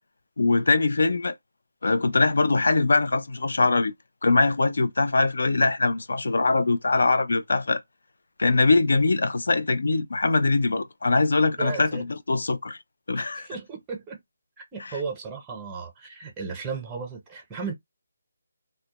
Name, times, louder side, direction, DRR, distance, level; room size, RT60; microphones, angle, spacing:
voice 1, 0.4-1.3 1.8-3.9 4.2-7.8 8.4-12.8 13.1-13.5, left 3 dB, 75° left, 0.4 m, -22 dB
voice 2, 11.6-12.0 13.1-14.2 14.7-17.7, right 5 dB, 10° right, 0.6 m, -35 dB
2.1 x 2.1 x 2.9 m
hypercardioid pair, 170°, 0 cm